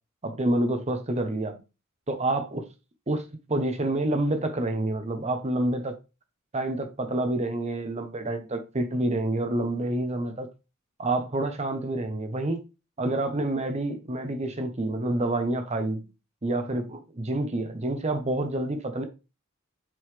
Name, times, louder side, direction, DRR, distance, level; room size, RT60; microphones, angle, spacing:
voice 1, 0.2-1.6 2.1-2.6 3.1-5.9 6.5-10.5 11.0-12.6 13.0-16.0 16.4-19.0, right 1 dB, 30° right, 0.8 m, -28 dB
7.6 x 3.9 x 3.2 m
head